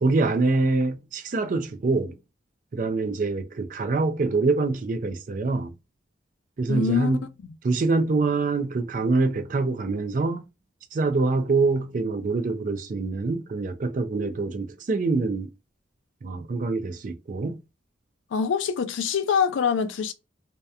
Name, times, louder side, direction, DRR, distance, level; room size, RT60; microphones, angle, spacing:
voice 1, 0.0-2.1 2.7-5.7 6.6-7.3 7.6-10.5 10.9-15.5 16.2-17.6, right 3 dB, 45° right, 0.4 m, -25 dB
voice 2, 6.7-7.1 18.3-20.1, left 6 dB, 90° left, 0.4 m, -24 dB
2.7 x 2.1 x 2.3 m
head